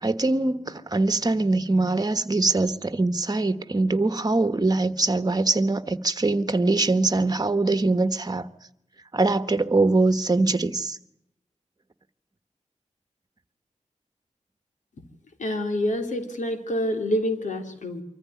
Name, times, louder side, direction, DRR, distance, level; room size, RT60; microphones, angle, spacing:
voice 1, 0.0-8.5 9.1-11.0, right 2 dB, 30° right, 1.4 m, -23 dB
voice 2, 15.4-18.0, left 1 dB, 90° left, 3.4 m, -27 dB
25.0 x 14.5 x 9.6 m
wide cardioid pair, 70°, 12 cm